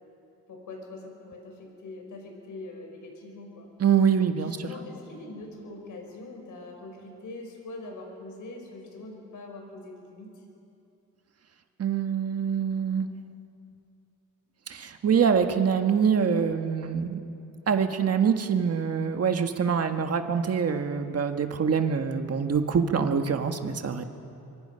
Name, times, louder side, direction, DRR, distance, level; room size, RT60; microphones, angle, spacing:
voice 1, 0.5-3.7 4.3-10.4, left 2 dB, 70° left, 2 dB, 5.2 m, -43 dB
voice 2, 3.8-4.6 11.8-13.1 14.7-17.2 17.7-24.0, right 7 dB, 50° right, 6 dB, 1.6 m, -25 dB
24.5 x 24.0 x 5.8 m, 2.7 s
cardioid pair, 105°, 33 cm